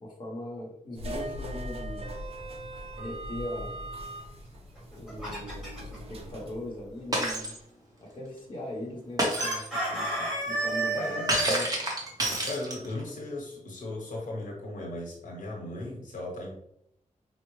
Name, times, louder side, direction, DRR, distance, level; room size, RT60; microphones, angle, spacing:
voice 1, 0.0-2.1 3.0-3.7 4.9-7.5 8.0-11.2 11.5-11.7, left 1 dB, 35° left, -3 dB, 0.8 m, -40 dB
sound 1, 0.9-7.5, equal, 50° right, 0.5 m, -40 dB
Chicken rooster, 4.8-6.0 9.4-11.5, right 2 dB, 5° right, 1.3 m, -31 dB
Shatter, 7.1-7.6 9.2-9.7 11.3-13.0, right 1 dB, 30° right, 0.8 m, -28 dB
voice 2, 10.9-11.3 12.4-16.5, left 2 dB, 75° left, -1 dB, 1.0 m, -37 dB
4.4 x 2.0 x 3.0 m, 0.74 s
wide cardioid pair, 150°, 13 cm